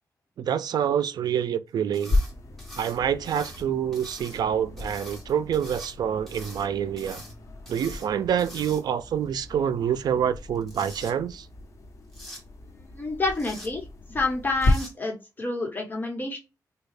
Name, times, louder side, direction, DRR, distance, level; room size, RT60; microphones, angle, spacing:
voice 1, 0.4-2.2 2.8-7.2 7.7-11.5, right 8 dB, 80° right, 0.4 m, -27 dB
sound 1, 1.9-2.3 2.6-3.6 3.9-4.4 4.8-5.9 6.3-6.7 7.0-7.3 7.7-8.1 8.4-9.1 10.4-11.1 12.1-12.4 13.3-13.7 14.6-14.9, equal, ahead, 1.6 m, -44 dB
sound 2, 2.1-14.7, left 2 dB, 45° left, 1.0 m, -34 dB
voice 2, 12.7-16.4, left 3 dB, 25° left, 1.2 m, -29 dB
4.2 x 2.3 x 3.3 m
wide cardioid pair, 105°, 7 cm